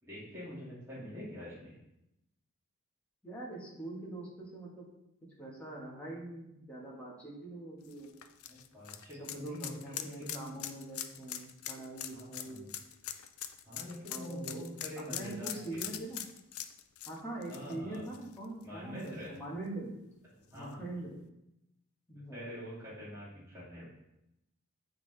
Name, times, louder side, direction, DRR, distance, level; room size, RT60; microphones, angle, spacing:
voice 1, 0.0-1.7 8.5-10.7 12.1-12.7 13.6-15.8 17.5-18.0 18.6-19.4 20.4-20.8 22.1-23.9, equal, 10° right, -11 dB, 2.6 m, -45 dB
voice 2, 3.2-4.9 5.4-8.1 9.2-12.7 14.1-14.6 15.1-16.2 17.1-19.9 20.5-21.2 22.1-22.6, right 2 dB, 5° left, -6 dB, 1.6 m, -43 dB
sound 1, 7.8-18.6 19.0-19.1 20.6-20.7, left 11 dB, 70° left, 0.4 m, -42 dB
8.6 x 3.8 x 3.4 m, 0.85 s
head